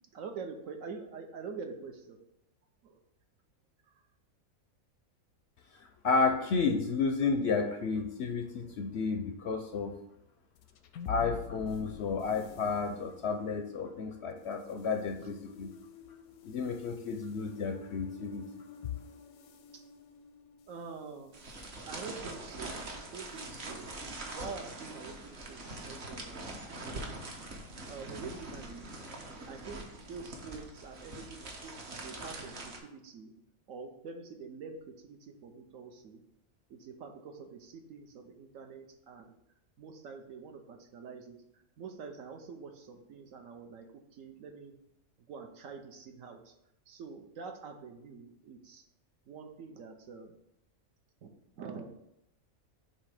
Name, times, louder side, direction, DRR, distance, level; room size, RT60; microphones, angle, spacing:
voice 1, 0.0-2.2 2.8-3.0 3.9-4.0 19.7-19.8 20.7-21.4 21.9-23.9 24.3-26.6 27.9-28.9 29.5-33.3 33.7-36.2 36.7-39.3 39.8-44.7 45.3-46.5 46.9-48.8 49.3-50.3 51.2-51.9, right 5 dB, 70° right, 5 dB, 1.1 m, -46 dB
voice 2, 5.7-9.9 11.1-15.7 16.4-18.4, left 4 dB, 65° left, 5 dB, 0.7 m, -32 dB
sound 1, 10.6-21.1, left 8 dB, 85° left, 1.0 m, -48 dB
sound 2, 21.3-32.8, right 2 dB, 50° right, 1.2 m, -43 dB
7.6 x 2.9 x 4.8 m, 0.81 s
omnidirectional pair, 1.5 m